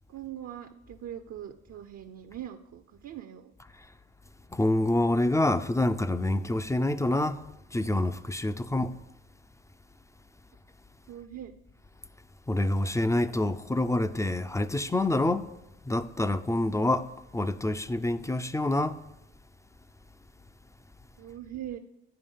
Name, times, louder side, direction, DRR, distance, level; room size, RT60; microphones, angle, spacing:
voice 1, 0.1-3.5 11.1-11.5 21.2-21.8, right 11 dB, 50° right, 0.7 m, -41 dB
voice 2, 4.5-7.4 7.7-9.0 12.5-15.5 15.9-17.1 17.3-19.0, left 1 dB, 10° left, 0.5 m, -27 dB
9.8 x 4.8 x 5.5 m
hypercardioid pair, 55°, 33 cm